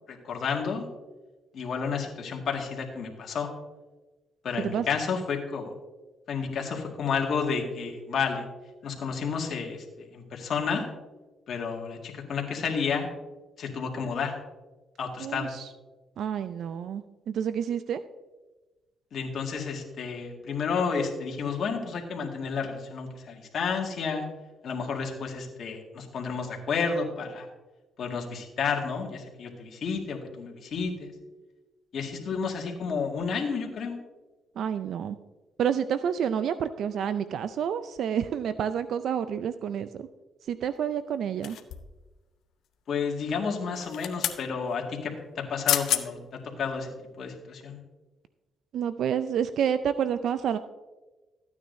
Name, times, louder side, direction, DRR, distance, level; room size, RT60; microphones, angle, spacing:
voice 1, 0.1-0.8 1.5-3.5 4.4-5.7 6.3-8.4 8.8-10.8 11.5-13.1 13.6-14.3 15.0-15.5 19.1-24.2 24.6-27.5 28.0-31.1 31.9-34.0 42.9-46.9 47.2-47.8, left 5 dB, 60° left, 1 dB, 1.9 m, -31 dB
voice 2, 15.2-15.7 16.2-18.0 34.6-35.2 35.6-40.1 40.5-41.6 48.7-50.6, right 8 dB, 70° right, 12 dB, 0.4 m, -29 dB
sound 1, 41.4-42.0 43.7-44.4 45.4-45.5 45.7-46.0 46.6-46.7, left 11 dB, 80° left, 0.7 m, -29 dB
14.0 x 9.4 x 2.6 m, 1.2 s
cardioid pair, 90°, 0 cm